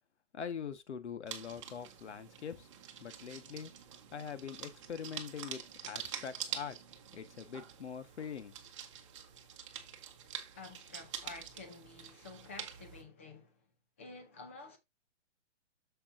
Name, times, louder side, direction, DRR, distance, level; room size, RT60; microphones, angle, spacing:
voice 1, 0.3-2.7 3.0-3.7 4.1-6.8 7.1-8.5, left 7 dB, 70° left, 1.5 m, -43 dB
sound 1, 1.3-13.0, right 9 dB, 25° right, 1.0 m, -46 dB
voice 2, 10.5-13.7 14.0-14.8, left 3 dB, 10° left, 0.6 m, -50 dB
8.4 x 7.1 x 2.6 m
hypercardioid pair, 170°, 36 cm